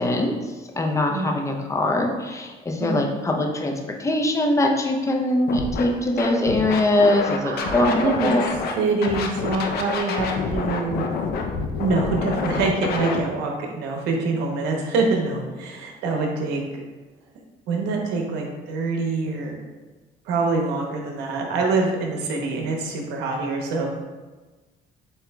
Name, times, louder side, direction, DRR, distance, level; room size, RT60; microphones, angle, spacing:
voice 1, 0.0-3.7 4.0-7.9 8.2-8.4, left 1 dB, 20° left, 1 dB, 0.6 m, -22 dB
Scratching (performance technique), 5.5-5.8 6.2-8.7 9.0-13.2, left 5 dB, 65° left, 0.6 m, -27 dB
voice 2, 7.4-8.3 8.8-11.1 11.8-16.6 17.7-19.6 20.2-23.9, right 3 dB, 90° right, 1 dB, 0.9 m, -25 dB
7.5 x 2.8 x 2.3 m, 1.3 s
cardioid pair, 110°, 17 cm